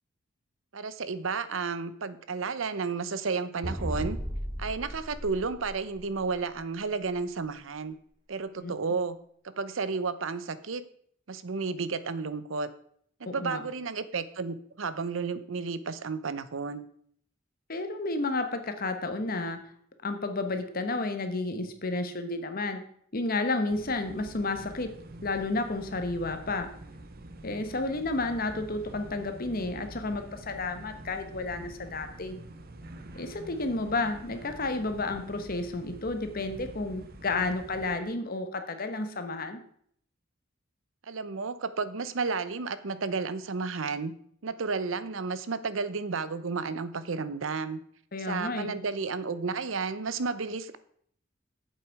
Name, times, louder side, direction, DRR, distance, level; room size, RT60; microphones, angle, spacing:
voice 1, 0.7-4.2 4.6-8.0 8.3-9.2 9.6-10.8 11.3-12.7 13.2-16.9 41.1-44.1 44.4-47.8 48.3-50.8, right 4 dB, 75° right, 14 dB, 0.7 m, -32 dB
sound 1, 3.6-6.3, equal, 25° right, 3.1 m, -35 dB
voice 2, 13.3-13.6 17.7-19.6 20.0-22.9 23.1-24.9 25.2-26.7 27.4-32.4 33.1-39.6 48.1-48.8, left 2 dB, 45° left, 8 dB, 1.1 m, -31 dB
sound 2, 23.7-38.0, right 1 dB, 50° right, 0.9 m, -46 dB
8.4 x 7.7 x 4.7 m, 0.64 s
head